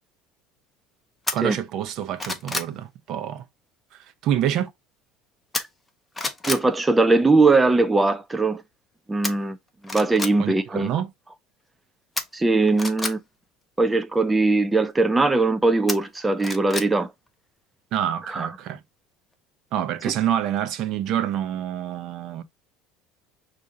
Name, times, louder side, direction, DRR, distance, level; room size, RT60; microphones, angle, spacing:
sound 1, 1.3-1.4 1.9-2.7 5.5-5.9 6.1-6.6 9.2-9.3 9.8-10.3 12.2-13.1 15.9-16.9 17.3-17.4, left 2 dB, 10° left, 0.7 m, -29 dB
voice 1, 1.3-3.4 4.2-4.7 10.4-11.1 17.9-18.8 19.7-22.4, right 10 dB, 55° right, 0.6 m, -27 dB
voice 2, 6.5-8.6 9.1-9.6 9.8-10.9 12.3-13.2 13.8-17.1 18.3-18.5, right 3 dB, 10° right, 0.3 m, -20 dB
6.0 x 2.5 x 2.7 m
cardioid pair, 130°, 0 cm